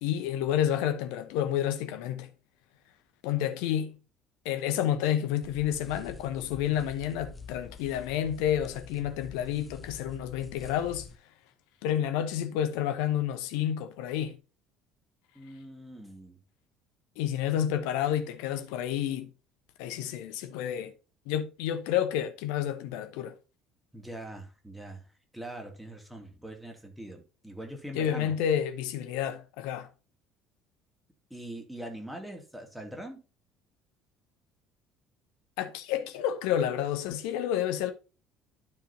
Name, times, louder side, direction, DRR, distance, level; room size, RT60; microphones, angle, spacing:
voice 1, 0.0-2.3 3.2-4.0 4.4-11.1 11.8-14.4 17.2-19.3 19.8-20.9 21.3-23.3 27.9-29.9 35.6-37.9, left 10 dB, 60° left, 0.9 m, -30 dB
sound 1, 5.4-11.2, left 4 dB, 20° left, 0.9 m, -47 dB
voice 2, 15.3-16.4 23.9-28.3 31.3-33.2, right 1 dB, 5° right, 2.6 m, -42 dB
12.0 x 4.9 x 2.8 m
figure-of-eight pair, 55°, 0 cm